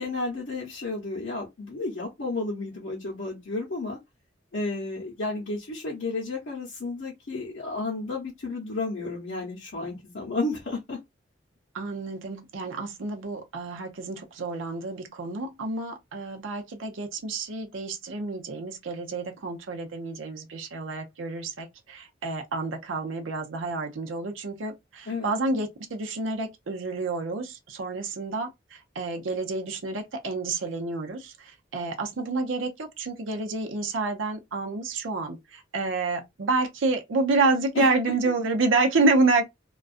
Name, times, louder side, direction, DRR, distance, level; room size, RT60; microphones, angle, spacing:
voice 1, 0.0-4.0 4.5-11.0 25.1-25.3 37.7-38.1, left 3 dB, 70° left, 0.7 m, -32 dB
voice 2, 11.7-39.5, right 3 dB, 90° right, 0.6 m, -29 dB
2.4 x 2.2 x 2.4 m
head